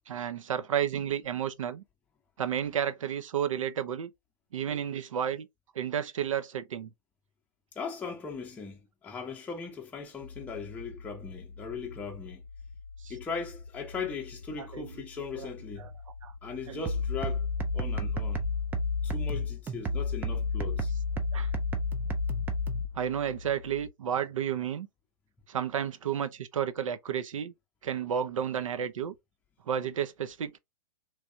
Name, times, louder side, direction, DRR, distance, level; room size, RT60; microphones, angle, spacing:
voice 1, 0.1-1.8 2.4-4.1 4.5-5.5 5.7-6.9 13.0-13.1 14.6-14.9 15.4-15.5 15.8-15.9 16.2-16.3 16.7-16.8 21.3-21.5 22.9-24.9 25.5-27.5 27.8-29.1 29.7-30.6, right 9 dB, 60° right, 0.5 m, -32 dB
voice 2, 7.7-12.4 13.1-15.9 16.4-17.5 17.7-18.5 19.0-20.9, left 5 dB, 10° left, 0.7 m, -39 dB
sound 1, 10.2-23.9, left 4 dB, 85° left, 0.6 m, -47 dB
sound 2, 16.9-22.9, left 2 dB, 10° right, 0.4 m, -30 dB
3.3 x 3.2 x 2.6 m
figure-of-eight pair, 115°, 19 cm